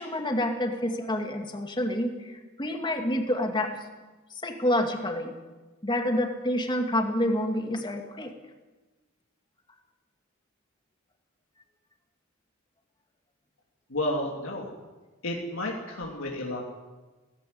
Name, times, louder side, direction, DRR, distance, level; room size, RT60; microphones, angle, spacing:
voice 1, 0.0-3.8 4.4-5.3 5.8-8.3, left 1 dB, 20° left, 4 dB, 2.3 m, -28 dB
voice 2, 13.9-14.7 15.2-16.6, left 1 dB, 80° left, -1 dB, 2.9 m, -31 dB
17.5 x 16.0 x 9.6 m, 1.2 s
head